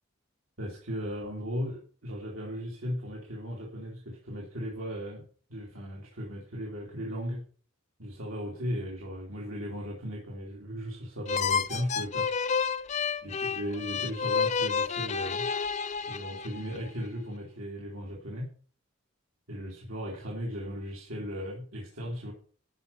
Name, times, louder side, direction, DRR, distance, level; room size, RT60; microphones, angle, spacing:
voice 1, 0.6-5.2 5.5-7.4 8.0-12.3 13.2-15.5 16.0-18.5 19.5-22.3, equal, 85° right, -3 dB, 2.9 m, -37 dB
sound 1, 11.3-16.8, left 6 dB, 35° left, 0.5 m, -30 dB
13.0 x 5.5 x 6.9 m, 0.43 s
head